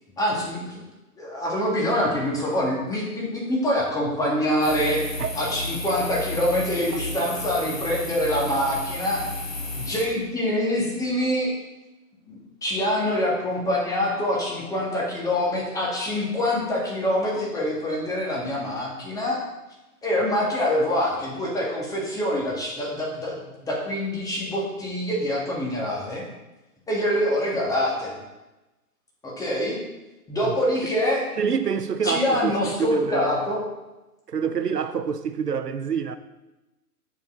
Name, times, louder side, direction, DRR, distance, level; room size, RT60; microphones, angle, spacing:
voice 1, 0.2-0.9 1.2-5.0 5.3-9.3 9.7-11.5 12.3-19.4 20.0-26.3 26.9-28.2 29.2-29.8 30.3-31.2 32.0-33.6, left 1 dB, 5° left, 1.9 m, -25 dB
sound 1, 4.6-10.1, left 2 dB, 55° left, 3.3 m, -33 dB
voice 2, 31.4-32.5 32.8-33.4 34.3-36.2, right 6 dB, 80° right, 0.7 m, -26 dB
9.0 x 7.1 x 3.8 m
figure-of-eight pair, 125°, 46 cm